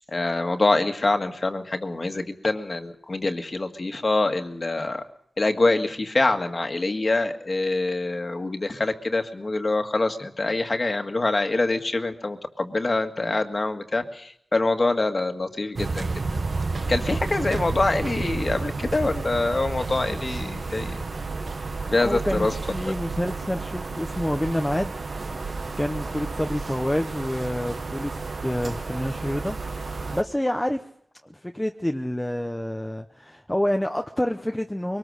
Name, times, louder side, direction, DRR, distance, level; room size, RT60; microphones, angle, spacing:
voice 1, 0.1-5.0 5.4-16.1 16.9-21.1 21.9-22.5, left 2 dB, 40° left, 6 dB, 1.8 m, -25 dB
sound 1, 15.8-30.2, right 3 dB, 55° right, 1.2 m, -31 dB
voice 2, 22.0-24.9 25.8-28.1 28.4-30.9 31.2-35.0, left 1 dB, 10° left, 5 dB, 0.8 m, -28 dB
23.5 x 19.5 x 6.5 m, 0.68 s
wide cardioid pair, 105°, 0 cm